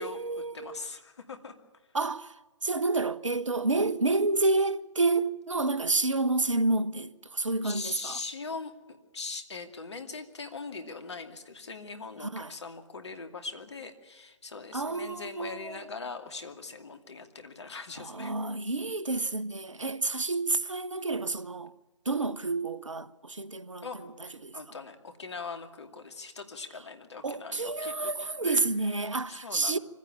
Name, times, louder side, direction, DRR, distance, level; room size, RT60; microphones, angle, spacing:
voice 1, 0.0-0.8 1.9-2.4 2.6-8.2 12.2-12.5 14.7-15.9 18.0-21.7 22.0-23.9 24.4-24.5 27.2-29.8, right 3 dB, 75° right, 1.0 m, -29 dB
voice 2, 0.5-1.5 7.6-18.3 23.8-28.7 29.0-29.8, left 4 dB, 60° left, 2.5 m, -41 dB
24.0 x 16.0 x 9.0 m
figure-of-eight pair, 135°, 16 cm